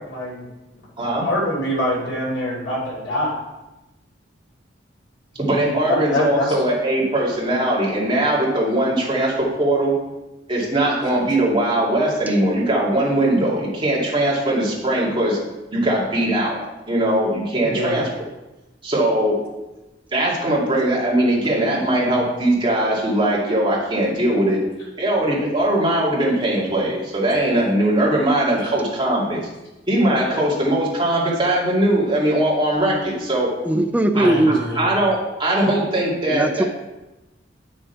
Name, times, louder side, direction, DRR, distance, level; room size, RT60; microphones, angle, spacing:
voice 1, 0.1-0.5 1.2-3.3 5.5-6.6 17.6-18.0 28.6-28.7 34.1-34.8, left 1 dB, 75° left, -5 dB, 3.3 m, -25 dB
voice 2, 1.0-1.3 5.4-9.9 10.5-15.4 15.7-16.6 16.9-18.1 18.8-19.4 20.1-24.6 25.0-29.4 29.9-33.5 34.1-34.3 34.8-36.7, right 1 dB, 25° right, -5 dB, 2.4 m, -20 dB
voice 3, 33.6-34.6 36.3-36.6, right 1 dB, 10° right, 6 dB, 0.5 m, -18 dB
8.9 x 6.4 x 4.5 m, 1.0 s
head